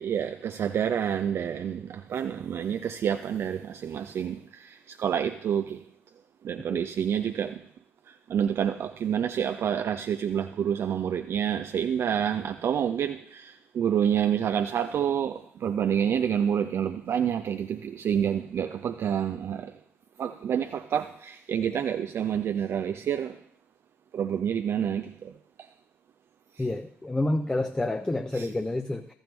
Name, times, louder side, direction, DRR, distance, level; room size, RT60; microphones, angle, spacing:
voice 1, 0.0-5.9 6.4-7.7 8.1-19.8 20.2-23.4 24.1-25.3 25.6-25.7 26.5-26.7 28.3-28.5, right 8 dB, 45° right, 0.4 m, -28 dB
voice 2, 26.6-29.1, left 2 dB, 10° left, 0.6 m, -29 dB
14.5 x 6.2 x 3.2 m
figure-of-eight pair, 45°, 6 cm